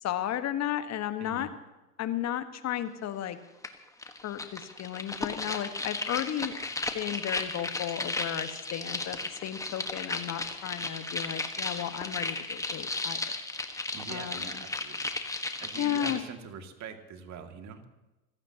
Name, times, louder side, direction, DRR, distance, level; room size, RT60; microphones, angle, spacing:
voice 1, 0.0-1.5 2.0-3.4 4.2-6.5 6.9-13.2 14.1-14.6 15.8-16.2, left 11 dB, 35° left, 10 dB, 1.6 m, -34 dB
voice 2, 1.2-1.5 13.9-15.0 15.6-17.8, right 6 dB, 35° right, 5 dB, 2.5 m, -43 dB
sound 1, 3.6-3.7 4.0-16.2, left 2 dB, 5° left, 1.5 m, -35 dB
26.5 x 16.0 x 3.0 m, 1.0 s
hypercardioid pair, 95°, 46 cm